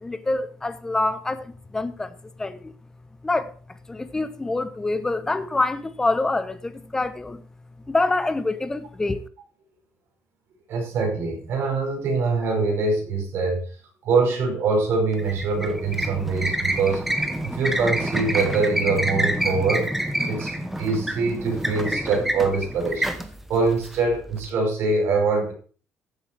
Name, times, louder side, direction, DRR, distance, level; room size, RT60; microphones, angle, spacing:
voice 1, 0.0-2.7 3.2-3.5 3.9-7.4 7.9-9.2, left 2 dB, 10° left, 0.8 m, -26 dB
voice 2, 10.7-13.6 14.0-17.1 17.5-19.9 20.3-20.5 20.8-23.1 23.5-25.5, right 4 dB, 55° right, 5.4 m, -23 dB
sound 1, 15.1-24.5, right 1 dB, 5° right, 1.1 m, -27 dB
14.0 x 7.7 x 4.6 m
cardioid pair, 165°, 5 cm